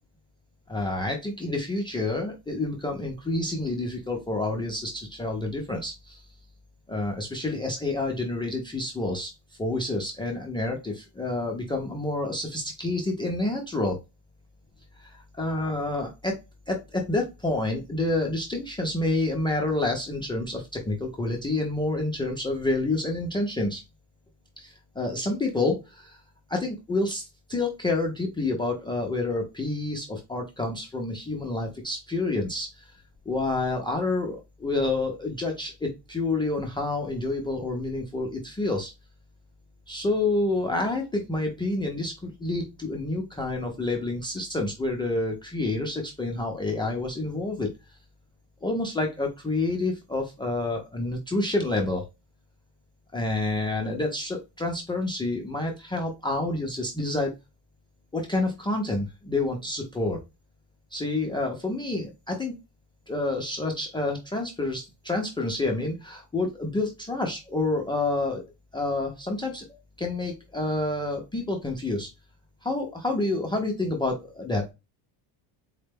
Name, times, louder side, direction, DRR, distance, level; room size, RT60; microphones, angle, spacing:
voice 1, 0.7-6.2 6.9-9.3 9.6-14.0 15.0-16.4 16.7-23.8 24.6-26.2 26.5-32.9 33.3-38.9 39.9-47.7 48.6-52.1 53.1-57.3 58.1-60.2 60.9-62.5 63.1-68.4 68.7-69.6 70.0-72.1 72.6-74.7, left 2 dB, 10° left, 2 dB, 0.4 m, -28 dB
4.0 x 2.1 x 3.3 m, 0.24 s
cardioid pair, 140°, 47 cm